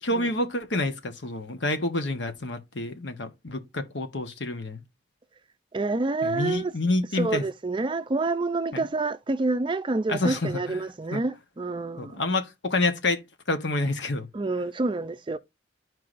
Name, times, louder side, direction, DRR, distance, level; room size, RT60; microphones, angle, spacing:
voice 1, 0.0-4.8 6.2-7.4 8.7-8.9 10.1-10.8 11.1-11.2 12.0-13.2 13.5-14.3, left 2 dB, 70° left, 1.2 m, -28 dB
voice 2, 5.7-6.7 7.1-12.2 14.3-15.4, right 3 dB, 25° right, 0.4 m, -28 dB
13.0 x 4.7 x 2.5 m
head